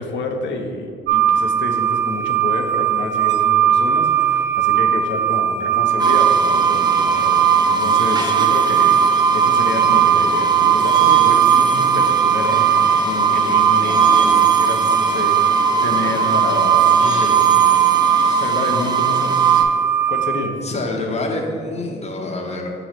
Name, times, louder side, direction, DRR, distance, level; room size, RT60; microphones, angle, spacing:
voice 1, 0.0-17.4 18.4-19.7 20.1-20.6, left 2 dB, 70° left, 4 dB, 0.8 m, -28 dB
sound 1, 1.1-20.5, right 9 dB, 60° right, 0.4 m, -19 dB
sound 2, 6.0-19.6, right 6 dB, 20° right, 0.6 m, -19 dB
voice 2, 17.0-18.6 20.6-22.7, left 2 dB, 35° left, 1 dB, 1.0 m, -28 dB
6.2 x 3.0 x 5.8 m, 2.3 s
cardioid pair, 90°, 20 cm